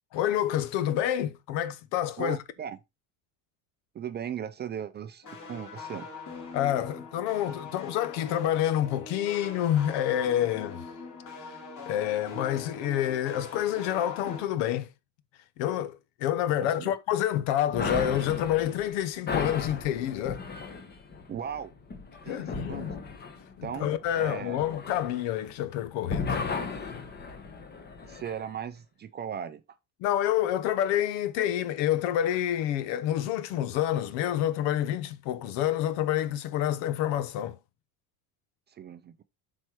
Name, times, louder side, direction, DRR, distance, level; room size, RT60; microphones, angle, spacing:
voice 1, 0.1-2.4 6.5-10.8 11.9-14.9 15.6-20.4 22.3-22.9 23.6-26.4 30.0-37.6, left 11 dB, 80° left, 1.1 m, -28 dB
voice 2, 2.2-2.8 3.9-6.1 16.8-16.9 21.3-21.7 22.2-22.9 23.6-24.6 28.0-29.6 38.7-39.2, right 8 dB, 25° right, 0.4 m, -37 dB
sound 1, 5.2-14.4, left 3 dB, 40° left, 3.6 m, -42 dB
sound 2, 17.7-25.7 26.1-28.4, left 4 dB, 25° left, 1.1 m, -36 dB
7.7 x 4.4 x 4.8 m
cardioid pair, 150°, 44 cm